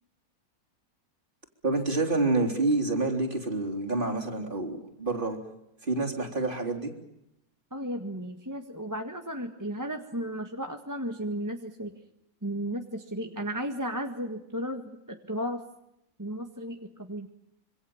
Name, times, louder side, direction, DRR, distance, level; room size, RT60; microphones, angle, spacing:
voice 1, 1.6-5.4 5.8-6.9, right 2 dB, 35° right, 2 dB, 3.8 m, -28 dB
voice 2, 7.7-12.0 12.4-15.6 16.2-17.3, equal, 10° right, 4 dB, 1.7 m, -34 dB
26.5 x 25.0 x 7.3 m, 0.84 s
omnidirectional pair, 1.6 m